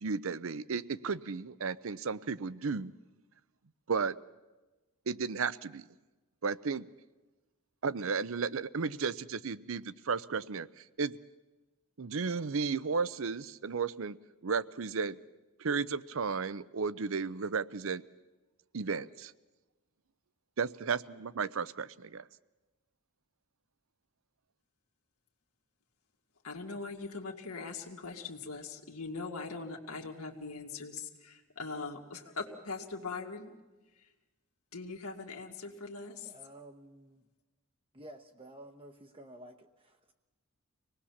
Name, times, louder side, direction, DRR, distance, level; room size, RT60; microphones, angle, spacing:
voice 1, 0.0-2.9 3.9-4.2 5.1-5.8 6.4-6.9 7.8-11.2 12.0-14.2 14.4-15.2 15.6-18.0 18.7-19.3 20.6-22.2, right 5 dB, 65° right, 18 dB, 0.6 m, -34 dB
voice 2, 26.4-33.5 33.9-34.1 34.7-36.3, left 4 dB, 90° left, 1 dB, 2.1 m, -41 dB
voice 3, 36.2-37.2 37.9-40.1, right 1 dB, 25° right, 5 dB, 0.9 m, -52 dB
25.5 x 18.5 x 7.2 m, 1.2 s
head